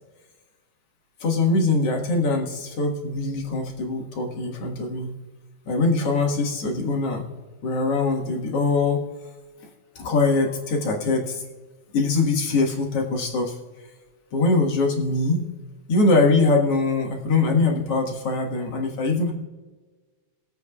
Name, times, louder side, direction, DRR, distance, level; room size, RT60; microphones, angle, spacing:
voice 1, 1.2-5.1 5.7-7.2 7.6-9.1 10.0-11.4 11.9-13.5 14.3-15.5 15.9-19.3, left 3 dB, 55° left, 0 dB, 2.4 m, -22 dB
23.0 x 8.2 x 2.4 m, 1.3 s
omnidirectional pair, 3.4 m